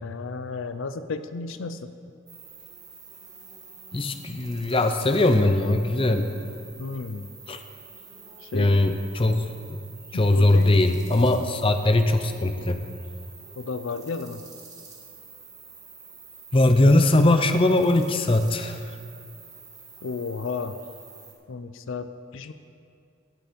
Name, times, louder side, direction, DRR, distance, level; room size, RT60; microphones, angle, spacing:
voice 1, 0.0-1.9 6.8-7.3 8.4-8.8 10.1-10.9 13.6-14.4 20.0-20.8 21.5-22.5, left 4 dB, 75° left, 11 dB, 0.5 m, -33 dB
sound 1, 2.3-21.3, right 4 dB, 20° right, 1.6 m, -47 dB
voice 2, 3.9-6.3 7.5-7.6 8.5-9.4 9.7-9.8 10.1-12.8 16.5-18.8, left 2 dB, 25° left, 7 dB, 0.6 m, -20 dB
17.0 x 6.9 x 5.2 m, 2.4 s
head